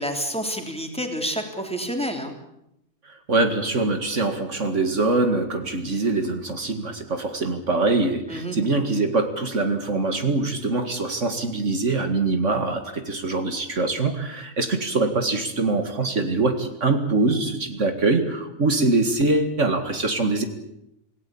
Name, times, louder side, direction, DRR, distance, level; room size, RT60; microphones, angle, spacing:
voice 1, 0.0-2.3 8.3-8.6, equal, 5° left, 4 dB, 3.2 m, -28 dB
voice 2, 3.0-20.4, right 3 dB, 60° right, 7 dB, 2.3 m, -23 dB
27.0 x 17.5 x 8.6 m, 0.83 s
omnidirectional pair, 1.4 m